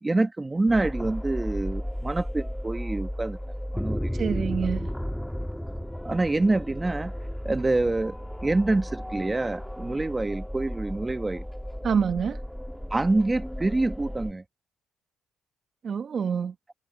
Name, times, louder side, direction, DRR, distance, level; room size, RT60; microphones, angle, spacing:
voice 1, 0.0-3.4 3.7-4.4 6.0-7.1 7.4-8.1 8.4-11.4 12.9-14.4, right 2 dB, 20° right, 1.5 m, -26 dB
sound 1, 0.7-14.3, equal, 5° left, 1.5 m, -34 dB
voice 2, 4.1-4.9 11.8-12.4 15.8-16.5, right 6 dB, 50° right, 1.0 m, -26 dB
cardioid pair, 90°, 0 cm